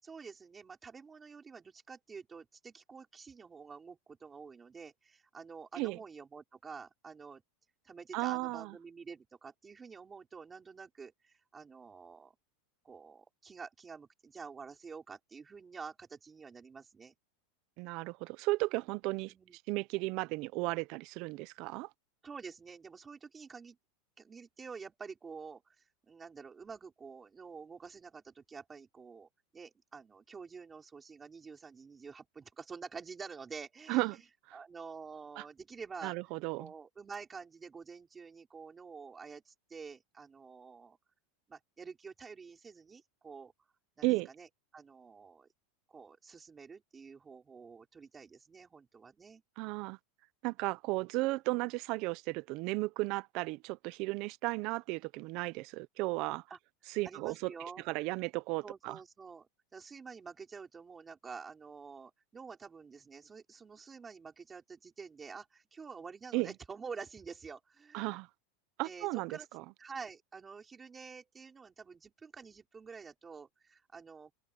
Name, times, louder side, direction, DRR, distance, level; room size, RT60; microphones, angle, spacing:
voice 1, 0.0-7.4 7.8-12.3 12.8-17.1 19.0-19.6 22.2-23.8 24.2-34.2 34.5-36.1 36.6-41.0 41.5-43.5 44.0-44.1 44.4-44.5 44.7-45.5 45.9-49.4 56.5-56.6 57.0-57.8 58.6-68.2 68.8-69.5 69.8-74.3, right 5 dB, 10° right, 4.6 m, -48 dB
voice 2, 8.1-8.8 17.8-19.3 19.7-21.9 33.9-34.2 34.5-34.6 35.4-35.5 36.0-36.7 44.0-44.3 49.6-50.0 50.4-56.4 56.9-57.5 57.9-59.0 66.3-66.5 67.9-68.3 68.8-69.6, right 22 dB, 40° right, 0.5 m, -34 dB
open air
supercardioid pair, 170°, 0 cm